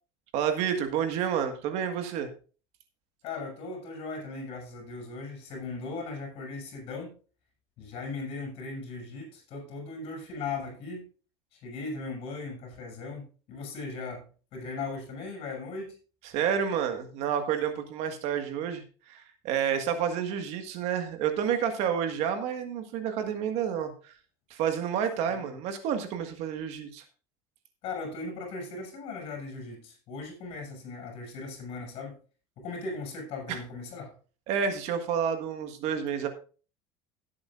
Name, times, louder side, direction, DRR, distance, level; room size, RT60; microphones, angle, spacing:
voice 1, 0.3-2.3 16.2-24.1 24.5-27.0 33.5-33.6 34.5-36.3, right 8 dB, 55° right, 1.7 m, -29 dB
voice 2, 3.2-7.1 7.8-11.0 11.5-16.0 25.3-25.6 27.8-32.1 32.6-34.1, left 3 dB, 45° left, 6.9 m, -38 dB
16.5 x 8.6 x 2.5 m
cardioid pair, 155°, 13 cm